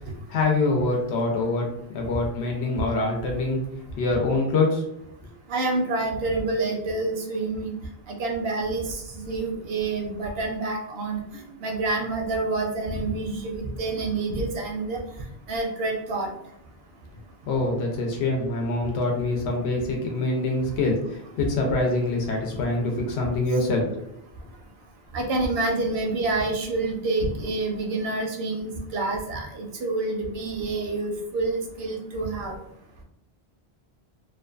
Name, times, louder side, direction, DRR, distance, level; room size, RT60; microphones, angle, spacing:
voice 1, 0.3-1.7 1.9-3.6 4.0-4.8 17.5-23.8, left 2 dB, 85° left, 0 dB, 0.9 m, -25 dB
voice 2, 5.5-7.7 8.1-11.2 11.6-15.0 15.5-16.3 25.1-32.6, right 2 dB, 75° right, 2 dB, 0.8 m, -27 dB
2.6 x 2.2 x 2.3 m, 0.78 s
omnidirectional pair, 1.1 m